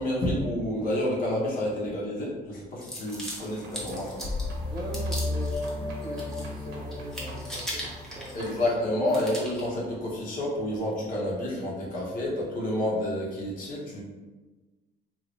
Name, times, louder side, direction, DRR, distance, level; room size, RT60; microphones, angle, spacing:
voice 1, 0.0-4.2 8.3-14.0, left 1 dB, 55° left, -4 dB, 1.1 m, -29 dB
sound 1, 2.8-4.5 4.9-5.7 6.0-6.7 6.9-8.7 9.1-9.7, equal, 5° left, 0.8 m, -38 dB
sound 2, 3.0-8.7, right 1 dB, 85° right, 0.8 m, -47 dB
sound 3, 3.8-8.5, left 2 dB, 25° left, 0.3 m, -34 dB
voice 2, 4.7-8.7, right 1 dB, 25° right, -3 dB, 0.7 m, -41 dB
2.7 x 2.6 x 3.0 m, 1.2 s
cardioid pair, 110°, 17 cm